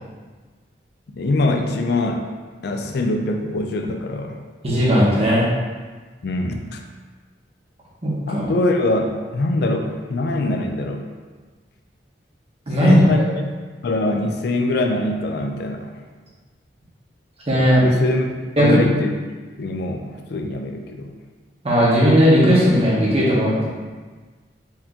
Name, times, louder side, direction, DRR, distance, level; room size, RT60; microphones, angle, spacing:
voice 1, 1.1-2.3 2.6-4.4 6.2-6.8 8.3-11.0 12.8-13.3 13.8-15.9 17.8-19.1 19.6-21.1, left 2 dB, 65° left, 3 dB, 0.4 m, -23 dB
voice 2, 4.6-5.5 8.0-8.5 12.7-13.3 17.5-17.8 18.6-18.8 21.6-23.7, equal, 35° right, -7 dB, 1.2 m, -16 dB
4.4 x 2.8 x 3.7 m, 1.4 s
head